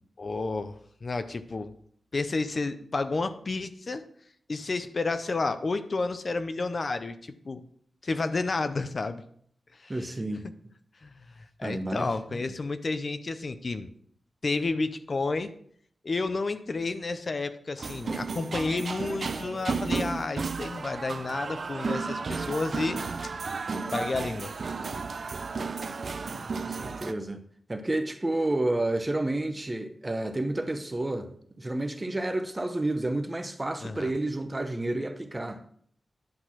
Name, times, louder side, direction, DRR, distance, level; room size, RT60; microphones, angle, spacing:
voice 1, 0.2-1.7 2.1-4.1 4.5-7.6 8.0-9.2 9.8-9.9 11.0-11.2 11.6-13.9 14.4-15.5 16.0-23.0 23.9-24.8 33.8-34.1, left 3 dB, 45° left, 0.5 m, -31 dB
voice 2, 9.9-10.5 11.6-12.4 26.2-27.4 27.7-31.3 31.6-35.6, right 2 dB, 20° right, 0.8 m, -30 dB
sound 1, 17.8-27.1, right 4 dB, 55° right, 0.5 m, -33 dB
10.5 x 4.0 x 6.0 m
wide cardioid pair, 110°, 0 cm